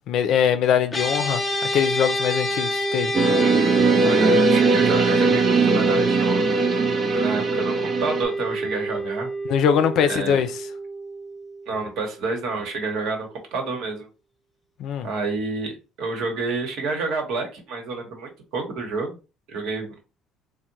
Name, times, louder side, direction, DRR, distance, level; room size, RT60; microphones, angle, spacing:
voice 1, 0.1-1.4 1.7-3.1 9.4-10.5 14.8-15.1, left 8 dB, 65° left, 0.4 m, -22 dB
sound 1, 0.9-12.4, right 1 dB, 25° left, 0.7 m, -28 dB
sound 2, 3.1-8.2, right 4 dB, 45° right, 0.5 m, -20 dB
voice 2, 4.0-6.6 7.1-9.3 10.1-10.4 11.7-14.1 15.0-19.2 19.5-19.9, right 3 dB, 75° right, 1.0 m, -29 dB
3.5 x 2.1 x 2.7 m
supercardioid pair, 80°, 0 cm